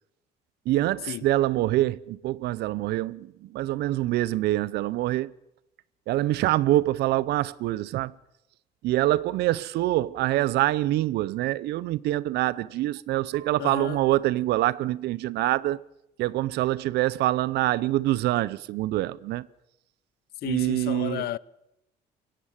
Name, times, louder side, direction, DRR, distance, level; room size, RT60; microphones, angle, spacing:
voice 1, 0.7-5.3 6.1-8.1 8.8-15.8 16.2-19.5 20.4-21.2, right 15 dB, 75° right, 0.7 m, -25 dB
voice 2, 13.6-14.0 20.4-21.4, left 15 dB, 70° left, 0.7 m, -33 dB
23.0 x 16.5 x 7.4 m
cardioid pair, 110°, 17 cm